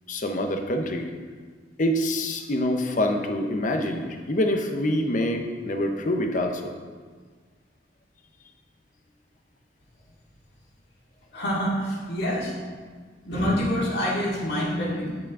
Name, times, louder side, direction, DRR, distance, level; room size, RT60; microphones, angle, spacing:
voice 1, 0.1-1.1 1.8-6.7, left 1 dB, 45° left, 4 dB, 0.6 m, -26 dB
voice 2, 11.3-12.5 13.2-15.2, equal, 65° left, -6 dB, 2.1 m, -26 dB
9.0 x 5.1 x 3.6 m, 1.6 s
head